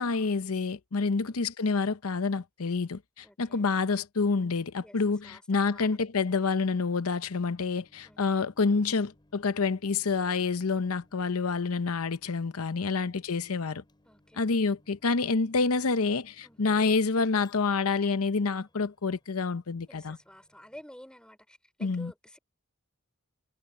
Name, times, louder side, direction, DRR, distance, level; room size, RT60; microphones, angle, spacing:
voice 1, 0.0-13.8 14.4-20.2 21.8-22.1, left 4 dB, 80° left, 0.8 m, -28 dB
voice 2, 3.2-3.7 4.8-5.0 5.2-6.0 8.0-8.3 12.7-13.2 14.1-14.5 16.4-16.6 19.9-22.4, equal, 5° left, 5.5 m, -52 dB
Microwave oven, 7.4-20.8, left 1 dB, 20° left, 5.7 m, -65 dB
head